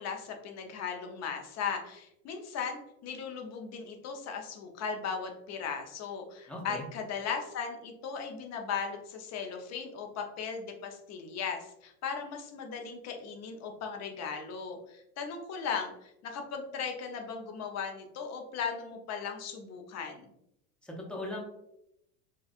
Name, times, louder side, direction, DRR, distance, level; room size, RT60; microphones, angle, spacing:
voice 1, 0.0-20.3, left 6 dB, 40° left, 3 dB, 0.7 m, -37 dB
voice 2, 6.5-6.8 20.8-21.4, left 1 dB, ahead, -2 dB, 0.7 m, -39 dB
4.3 x 2.3 x 2.3 m, 0.80 s
supercardioid pair, 120°, 41 cm